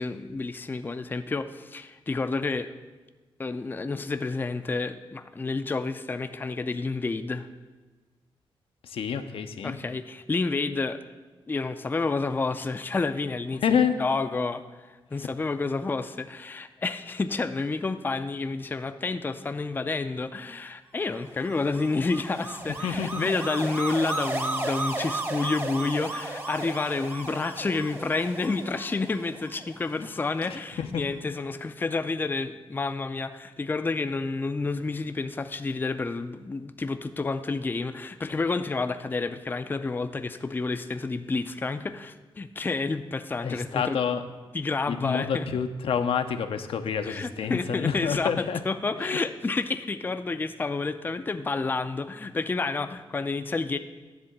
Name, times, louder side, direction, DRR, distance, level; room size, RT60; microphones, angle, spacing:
voice 1, 0.0-2.7 3.4-7.5 9.6-11.0 11.5-13.6 14.0-44.0 44.5-45.4 47.0-53.8, left 3 dB, 20° left, 9 dB, 0.4 m, -30 dB
voice 2, 8.8-9.8 13.6-13.9 22.8-23.3 30.4-30.5 30.8-31.0 43.4-44.2 44.9-48.6 49.0-49.2, left 7 dB, 75° left, 8 dB, 0.6 m, -28 dB
sound 1, 21.2-30.5, right 2 dB, 25° right, 0.9 m, -35 dB
10.5 x 3.7 x 7.1 m, 1.3 s
cardioid pair, 90°, 9 cm